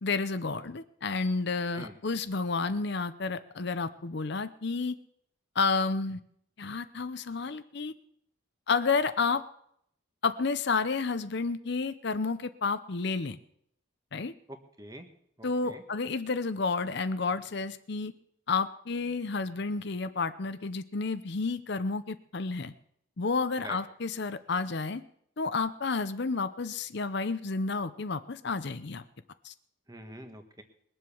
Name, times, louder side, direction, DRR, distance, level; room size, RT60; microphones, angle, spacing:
voice 1, 0.0-4.9 5.6-6.2 6.6-7.9 8.7-9.4 10.2-13.4 14.1-14.3 15.4-18.1 18.5-22.7 23.2-25.0 25.4-29.0 29.4-29.5, left 4 dB, 55° left, 12 dB, 0.7 m, -30 dB
voice 2, 14.5-15.1 15.4-15.8 23.6-23.8 29.9-30.6, right 1 dB, 20° right, 6 dB, 1.3 m, -45 dB
20.5 x 7.7 x 7.0 m, 0.69 s
head